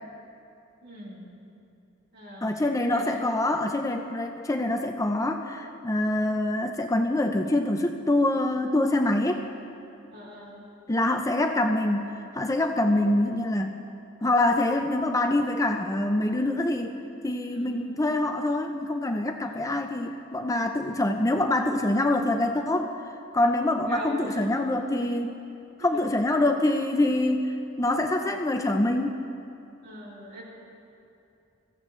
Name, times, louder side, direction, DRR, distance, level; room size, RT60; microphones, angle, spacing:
voice 1, 0.8-1.2 2.1-2.5 2.9-3.3 10.1-10.6 17.5-17.7 19.6-19.7 23.9-24.5 25.8-26.0 29.8-30.4, equal, 55° right, -6 dB, 3.8 m, -41 dB
voice 2, 2.4-9.4 10.9-13.8 14.2-16.9 17.2-22.9 23.3-25.3 25.8-29.2, left 1 dB, 15° left, 4 dB, 0.5 m, -25 dB
21.5 x 15.0 x 3.1 m, 2.7 s
head